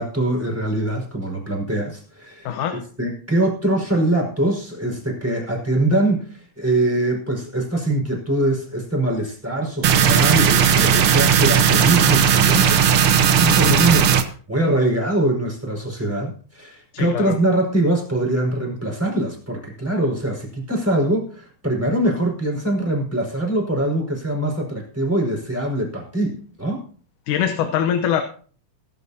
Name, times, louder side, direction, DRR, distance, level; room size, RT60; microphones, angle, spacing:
voice 1, 0.0-26.8, right 1 dB, 5° right, 0 dB, 4.8 m, -23 dB
voice 2, 2.5-2.8 16.9-17.3 27.3-28.2, left 9 dB, 80° left, 7 dB, 2.5 m, -22 dB
sound 1, 9.8-14.2, right 8 dB, 60° right, 1.6 m, -16 dB
21.5 x 11.5 x 2.8 m, 0.43 s
omnidirectional pair, 3.6 m